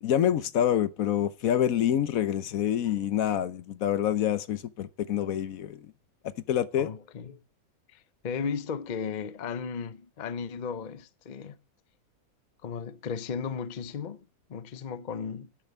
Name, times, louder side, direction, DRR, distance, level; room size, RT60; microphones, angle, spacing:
voice 1, 0.0-5.8 6.5-6.9, left 10 dB, 70° left, 1.1 m, -26 dB
voice 2, 6.8-7.4 7.9-11.6 12.6-15.6, left 6 dB, 40° left, 0.7 m, -35 dB
11.0 x 6.9 x 7.9 m
omnidirectional pair, 1.5 m